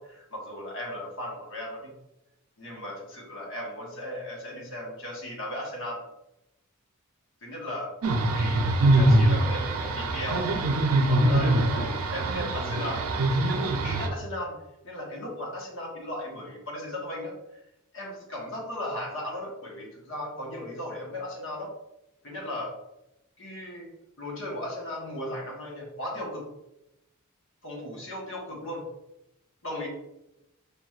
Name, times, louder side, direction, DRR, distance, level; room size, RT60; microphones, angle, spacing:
voice 1, 0.0-1.9 2.6-6.0 7.4-7.9 8.3-10.5 10.8-13.0 13.5-14.5 14.8-17.4 17.9-21.7 22.2-22.7 23.4-23.9 24.2-26.5 27.6-28.9 29.6-29.9, left 1 dB, 65° left, -2 dB, 1.2 m, -36 dB
sound 1, 8.0-14.1, right 1 dB, 85° right, 0.5 m, -23 dB
4.9 x 3.1 x 2.4 m, 0.89 s
head